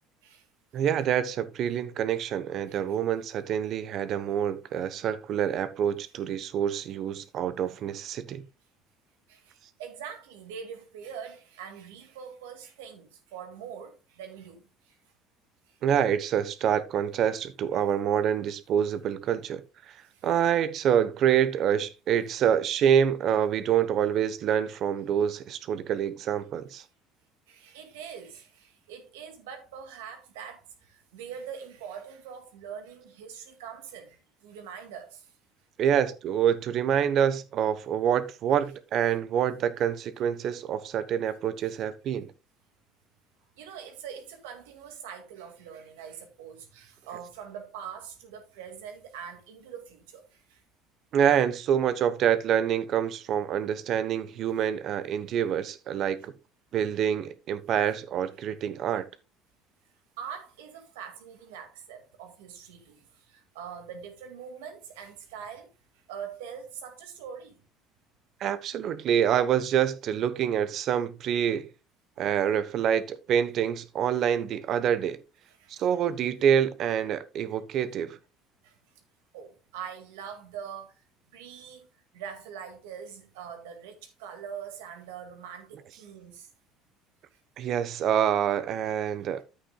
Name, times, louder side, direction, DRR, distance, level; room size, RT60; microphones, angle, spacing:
voice 1, 0.7-8.4 15.8-20.0 20.2-26.8 35.8-42.3 51.1-56.3 56.7-59.1 68.4-71.7 72.2-75.2 75.7-78.2 87.6-89.4, right 9 dB, 55° right, 0.9 m, -26 dB
voice 2, 2.7-3.0 9.3-15.0 15.7-15.8 20.1-20.3 27.5-35.3 36.0-36.1 41.6-41.7 43.6-50.6 60.2-65.7 66.1-67.6 75.5-75.9 78.6-78.8 79.3-81.9 82.1-86.5, right 7 dB, 90° right, 2.0 m, -43 dB
10.5 x 8.6 x 2.3 m
supercardioid pair, 90°, 0 cm